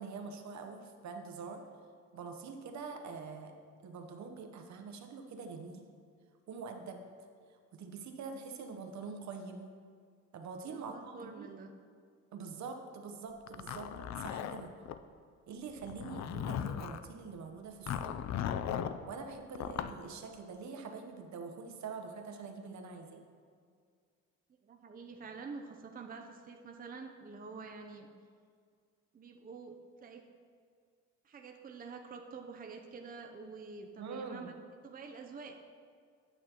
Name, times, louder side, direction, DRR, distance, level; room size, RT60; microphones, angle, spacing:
voice 1, 0.0-1.6 2.1-3.5 3.8-5.8 6.5-7.1 7.7-9.7 10.3-11.5 12.3-13.9 14.2-14.7 15.5-18.1 19.1-23.2 34.0-34.5, right 4 dB, 65° right, 5 dB, 0.9 m, -45 dB
voice 2, 10.6-11.7 24.6-28.1 29.1-30.3 31.2-34.6 34.8-35.6, right 4 dB, 30° right, 3 dB, 0.6 m, -47 dB
Zipper (clothing), 13.5-15.0 15.8-17.1 17.9-19.0 19.6-20.0, left 9 dB, 65° left, 0.5 m, -37 dB
9.0 x 8.0 x 2.9 m, 2.1 s
cardioid pair, 90°, 30 cm